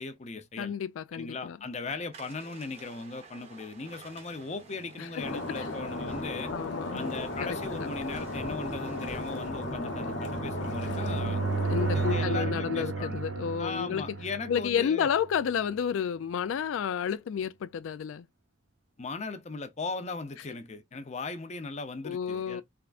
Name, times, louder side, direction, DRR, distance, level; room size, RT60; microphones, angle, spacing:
voice 1, 0.0-0.7 1.1-6.5 6.9-11.4 11.9-13.2 13.6-15.1 19.0-22.6, left 3 dB, 35° left, 0.6 m, -38 dB
voice 2, 0.6-1.6 5.0-5.7 6.5-7.1 7.8-7.9 11.6-14.0 14.5-18.3 22.0-22.6, left 7 dB, 85° left, 0.3 m, -31 dB
sound 1, 2.1-9.5, right 4 dB, 30° right, 1.1 m, -53 dB
sound 2, 4.9-15.7, right 4 dB, 80° right, 0.7 m, -35 dB
Stream, 5.2-12.2, left 2 dB, 65° left, 0.9 m, -35 dB
3.6 x 3.4 x 2.4 m
head